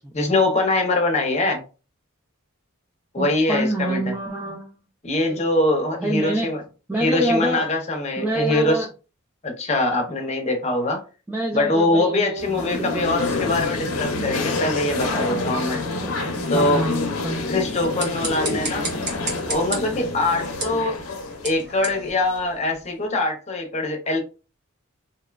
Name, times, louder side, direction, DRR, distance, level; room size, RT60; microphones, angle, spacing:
voice 1, 0.1-1.6 3.1-4.0 5.0-6.6 7.0-8.9 9.4-11.0 11.5-15.8 16.5-16.8 17.5-18.9 19.5-21.0 21.4-24.2, left 2 dB, 30° left, 2 dB, 0.7 m, -23 dB
voice 2, 3.2-4.8 6.0-6.5 6.9-7.7 8.2-8.9 11.3-13.5 15.8-17.4, right 1 dB, 10° right, -1 dB, 0.3 m, -27 dB
sound 1, 12.4-22.4, left 3 dB, 85° left, 0.6 m, -28 dB
sound 2, 17.7-23.0, right 3 dB, 55° right, 1.0 m, -34 dB
2.8 x 2.1 x 2.3 m, 0.32 s
head